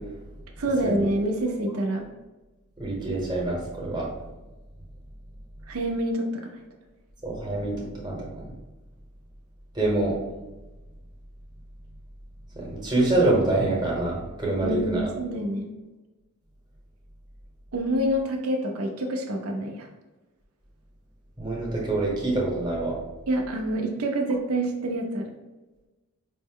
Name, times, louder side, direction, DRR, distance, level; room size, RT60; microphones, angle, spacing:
voice 1, 0.6-2.1 5.7-6.6 14.6-15.7 17.7-19.9 23.3-25.3, right 1 dB, 70° right, 2 dB, 0.6 m, -27 dB
voice 2, 2.8-4.1 7.2-8.4 9.7-10.1 12.6-15.0 21.4-23.0, right 2 dB, 20° right, -3 dB, 0.9 m, -26 dB
5.1 x 2.1 x 3.6 m, 1.1 s
head